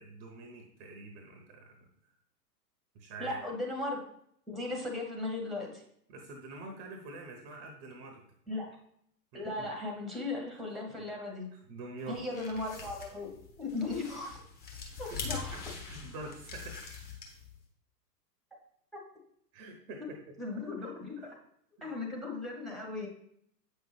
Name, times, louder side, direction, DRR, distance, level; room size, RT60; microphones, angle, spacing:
voice 1, 0.0-1.9 2.9-3.4 6.1-8.2 9.3-9.7 10.8-11.0 11.5-12.2 15.1-17.0 19.5-20.2 20.8-20.9 21.2-21.3 21.8-21.9, right 3 dB, 25° right, 3 dB, 0.9 m, -46 dB
voice 2, 3.2-4.1 4.5-5.8 8.5-8.8 9.3-11.5 12.1-14.4 15.0-15.5 18.9-19.0 20.4-21.4 21.8-23.1, left 2 dB, ahead, 1 dB, 1.1 m, -37 dB
sound 1, 12.1-17.6, left 5 dB, 20° left, 1.2 m, -43 dB
8.0 x 5.5 x 3.2 m, 0.70 s
figure-of-eight pair, 105°, 49 cm